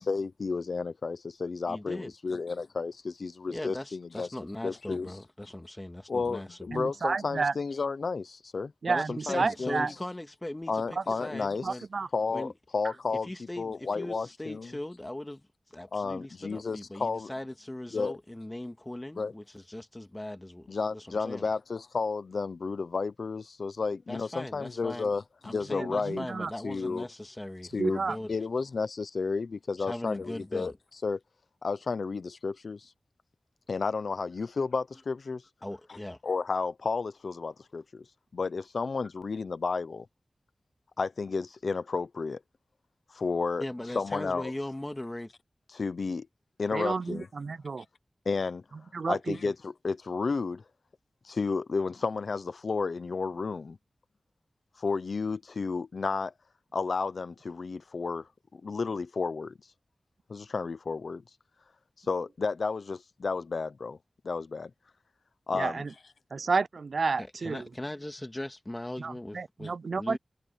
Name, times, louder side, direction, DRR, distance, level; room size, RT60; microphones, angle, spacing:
voice 1, 0.0-4.3 4.6-5.1 6.1-8.7 9.1-9.9 10.7-11.7 12.1-14.7 15.9-17.3 17.9-18.1 19.2-19.3 20.7-26.3 26.6-27.1 27.7-28.0 28.3-30.7 31.0-31.2 31.6-32.9 33.7-35.4 36.2-38.0 38.3-40.1 41.0-42.4 43.1-43.6 43.9-44.5 45.7-46.3 46.6-47.3 48.3-48.6 49.1-50.6 51.2-53.8 54.8-56.3 56.7-59.6 60.3-61.2 62.0-64.0 64.2-64.7 65.5-65.8, left 4 dB, 80° left, 0.8 m, -32 dB
voice 2, 1.7-2.1 3.5-6.8 8.9-11.9 12.3-12.5 13.2-21.5 24.1-25.1 25.4-28.3 29.8-30.7 35.6-36.2 43.6-45.3 67.2-70.2, left 1 dB, 20° left, 2.3 m, -39 dB
voice 3, 6.7-7.5 8.8-9.9 11.6-12.1 25.8-26.5 27.8-28.2 46.7-47.8 48.9-49.4 65.5-65.9 66.3-67.6 69.0-70.2, right 4 dB, 80° right, 0.4 m, -30 dB
wide cardioid pair, 70°, 0 cm